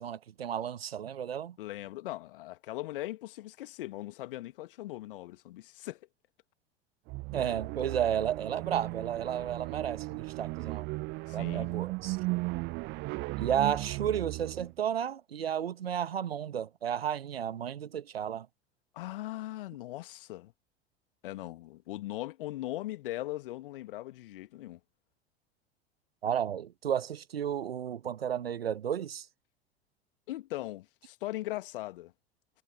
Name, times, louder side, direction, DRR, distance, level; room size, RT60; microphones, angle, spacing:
voice 1, 0.0-1.6 7.3-10.9 11.3-12.2 13.4-18.5 26.2-29.3, right 9 dB, 75° right, 1.1 m, -33 dB
voice 2, 1.6-6.0 11.3-11.7 18.9-20.5 21.2-24.8 30.3-32.1, left 16 dB, 60° left, 2.0 m, -39 dB
sound 1, 7.1-14.7, right 25 dB, 35° right, 0.5 m, -36 dB
figure-of-eight pair, 75°, 31 cm